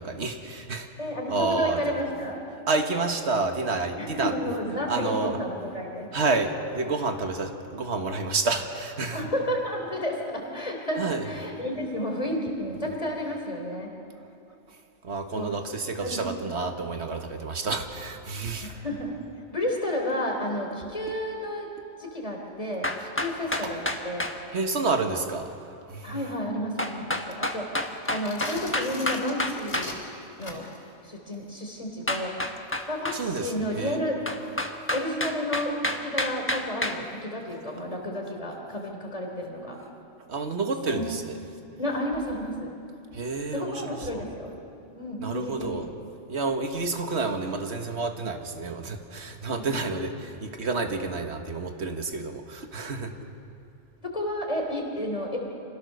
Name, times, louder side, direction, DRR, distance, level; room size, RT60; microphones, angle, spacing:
voice 1, 0.0-0.9 1.3-1.9 2.7-4.3 4.9-5.4 6.1-9.3 11.0-11.3 15.0-18.7 24.5-25.5 25.9-26.2 33.1-34.0 40.3-41.4 43.1-44.2 45.2-45.9 46.3-53.1, right 3 dB, 75° right, 5 dB, 1.7 m, -29 dB
voice 2, 1.0-2.4 4.0-6.1 9.1-13.9 15.3-15.5 16.0-16.2 18.6-19.2 19.5-21.7 22.0-24.3 26.0-27.8 28.1-30.0 30.4-30.6 31.0-32.3 32.9-34.2 34.9-39.8 40.8-41.1 41.8-42.7 43.5-44.5 44.9-45.9 49.5-49.6 54.0-55.4, left 1 dB, 30° left, 1 dB, 3.5 m, -31 dB
sound 1, 22.8-24.4 26.8-29.9 32.1-33.2 34.3-37.0, left 1 dB, 10° left, 1.2 m, -29 dB
sound 2, 28.0-30.9, left 2 dB, 85° left, 3.4 m, -40 dB
25.5 x 16.5 x 6.7 m, 2.7 s
omnidirectional pair, 1.2 m